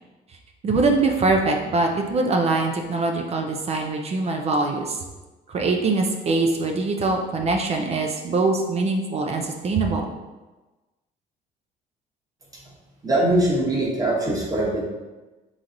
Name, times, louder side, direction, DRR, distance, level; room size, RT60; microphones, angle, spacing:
voice 1, 0.6-5.0 5.5-10.1, right 3 dB, 40° right, 3 dB, 0.6 m, -23 dB
voice 2, 13.0-14.8, right 1 dB, 20° right, -3 dB, 1.2 m, -22 dB
4.0 x 3.1 x 3.8 m, 1.2 s
cardioid pair, 110°, 17 cm